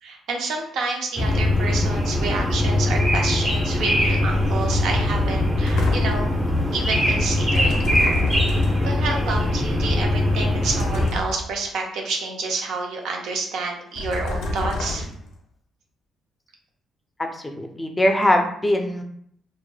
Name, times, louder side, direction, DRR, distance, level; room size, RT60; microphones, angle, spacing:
voice 1, 0.0-6.3 6.7-7.9 8.8-15.1, right 3 dB, 80° right, 1 dB, 0.5 m, -29 dB
sound 1, 1.2-11.1, left 1 dB, 25° right, 0.6 m, -21 dB
sound 2, 5.7-6.3 7.5-9.0 10.6-11.6 14.0-15.4, left 1 dB, 80° left, 0.5 m, -29 dB
voice 2, 17.2-19.0, left 1 dB, 15° left, 3 dB, 0.4 m, -21 dB
3.0 x 2.1 x 2.2 m, 0.67 s
cardioid pair, 90°, 0 cm